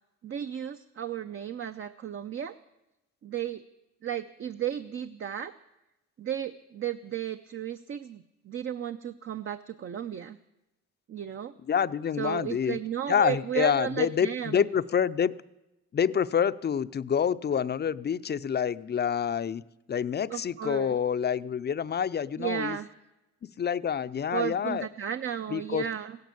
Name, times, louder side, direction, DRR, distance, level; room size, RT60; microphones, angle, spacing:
voice 1, 0.2-2.5 3.2-3.6 4.0-5.5 6.2-10.4 11.1-11.5 12.2-14.7 20.3-21.0 22.4-22.9 24.3-26.2, right 9 dB, 45° right, 9 dB, 0.6 m, -34 dB
voice 2, 11.7-12.8 13.1-15.3 15.9-19.6 19.9-22.8 23.4-24.9 25.5-25.9, left 8 dB, 35° left, 14 dB, 0.5 m, -27 dB
16.0 x 10.5 x 8.4 m, 0.95 s
cardioid pair, 90°, 30 cm